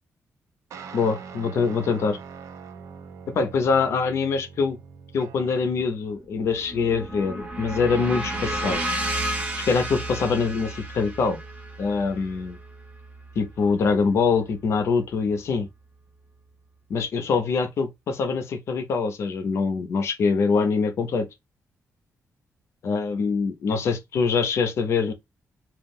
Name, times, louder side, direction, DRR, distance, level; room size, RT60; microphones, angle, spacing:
sound 1, 0.7-5.9, right 6 dB, 85° right, 0.5 m, -42 dB
voice 1, 0.9-2.2 3.3-4.8 5.1-8.9 9.7-11.4 11.8-12.6 13.4-15.7 16.9-21.3 22.8-25.1, left 5 dB, 60° left, 0.5 m, -24 dB
sound 2, 6.2-14.3, right 1 dB, 25° right, 0.6 m, -32 dB
2.3 x 2.0 x 3.5 m
wide cardioid pair, 180°, 5 cm